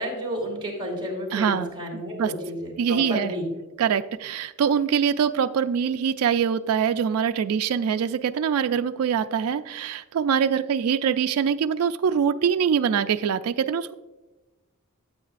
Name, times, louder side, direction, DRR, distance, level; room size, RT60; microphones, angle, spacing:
voice 1, 0.0-3.4, equal, 25° right, -3 dB, 2.9 m, -31 dB
voice 2, 1.3-2.3 2.8-3.3 3.8-13.9, right 7 dB, 80° right, 9 dB, 0.3 m, -24 dB
14.0 x 8.0 x 2.5 m, 1.1 s
head